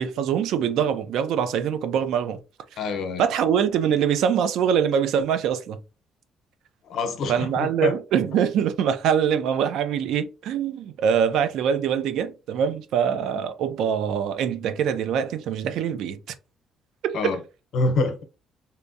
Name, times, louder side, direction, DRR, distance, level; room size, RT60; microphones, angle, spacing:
voice 1, 0.0-2.4 3.2-5.8 7.3-16.2 17.0-17.4, right 8 dB, 80° right, 0.4 m, -24 dB
voice 2, 2.8-3.2 6.8-7.9 17.1-17.4 17.7-18.2, left 3 dB, 65° left, 0.8 m, -25 dB
3.5 x 2.7 x 2.6 m
cardioid pair, 125°, 0 cm